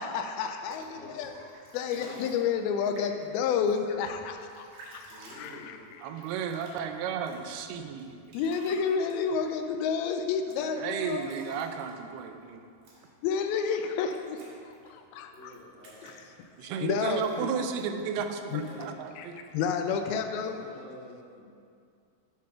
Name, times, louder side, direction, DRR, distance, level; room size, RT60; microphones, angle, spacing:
voice 1, 0.0-1.3 1.7-6.0 8.3-11.3 13.2-15.6 16.0-17.6 18.5-18.6 19.2-19.3 19.5-20.7, left 6 dB, 85° left, 6 dB, 2.4 m, -31 dB
sound 1, 0.5-20.1, right 1 dB, 60° right, 3.2 m, -55 dB
voice 2, 1.9-2.2 5.1-5.8 15.2-16.2 17.0-17.3 17.7-17.8 18.6-18.9 20.2-21.4, left 2 dB, 20° left, -10 dB, 2.2 m, -49 dB
voice 3, 6.0-8.2 10.6-12.7 16.6-19.4, right 6 dB, 90° right, 6 dB, 2.6 m, -33 dB
7.6 x 7.5 x 5.7 m, 2.4 s
omnidirectional pair, 4.4 m